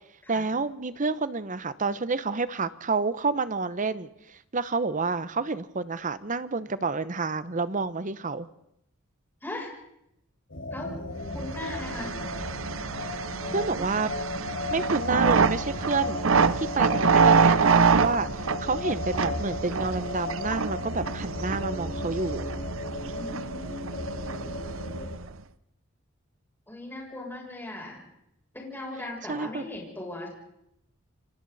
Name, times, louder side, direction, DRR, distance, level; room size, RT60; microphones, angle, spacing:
voice 1, 0.3-8.5 13.5-14.1 14.7-16.2 16.6-22.4 29.3-29.6, right 4 dB, 40° right, 14 dB, 0.9 m, -29 dB
sound 1, 10.5-25.1, left 2 dB, 65° left, 5.5 m, -35 dB
voice 2, 11.3-12.1 23.1-24.5 26.7-28.0 28.5-30.3, left 2 dB, 10° left, -2 dB, 7.5 m, -39 dB
sound 2, 11.4-25.3, right 5 dB, 75° right, 0.8 m, -26 dB
29.5 x 25.0 x 4.2 m, 0.80 s
head